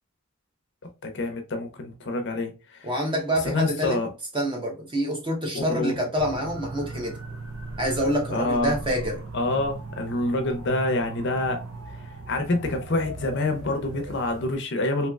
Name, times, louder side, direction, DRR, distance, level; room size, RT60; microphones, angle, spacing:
voice 1, 1.0-2.9 3.4-4.1 5.5-6.0 8.3-8.8 9.3-11.7 12.3-15.1, left 2 dB, 55° left, 0.6 m, -27 dB
voice 2, 2.8-4.0 4.3-7.2 7.8-9.2, equal, 25° right, 0.9 m, -26 dB
sound 1, 6.2-14.6, right 2 dB, 85° right, 0.7 m, -38 dB
3.1 x 2.9 x 2.3 m
head